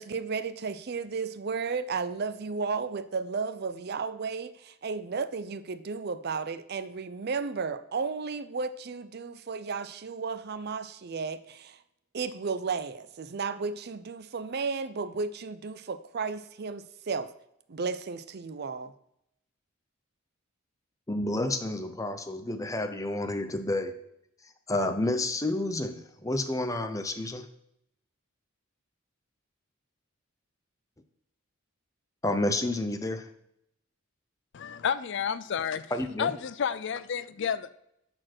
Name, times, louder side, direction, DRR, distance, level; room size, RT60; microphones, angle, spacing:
voice 1, 0.0-11.8 12.1-17.3 17.7-18.9, right 4 dB, 50° right, 13 dB, 0.5 m, -33 dB
voice 2, 21.1-23.9 24.7-27.5 32.2-33.3 35.9-36.3, left 2 dB, 15° left, 8 dB, 0.6 m, -30 dB
voice 3, 34.5-35.8 36.2-37.7, left 7 dB, 55° left, 15 dB, 0.4 m, -30 dB
11.0 x 4.4 x 6.0 m, 0.78 s
head